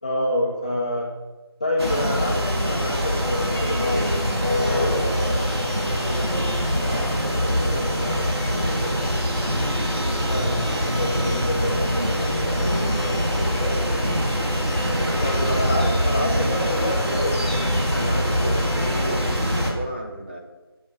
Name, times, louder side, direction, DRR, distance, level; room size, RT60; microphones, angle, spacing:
voice 1, 0.0-1.1 1.6-4.2 4.7-5.0 10.2-12.0 15.2-17.9, left 1 dB, 15° left, -4 dB, 1.3 m, -27 dB
sound 1, 1.8-19.7, equal, 85° right, 3.7 m, -23 dB
voice 2, 4.7-5.5 5.8-6.3 6.6-8.9 11.6-13.9 14.9-15.9 17.9-20.4, equal, 25° right, 0 dB, 1.5 m, -34 dB
11.0 x 8.0 x 6.9 m, 1.2 s
figure-of-eight pair, 175°, 13 cm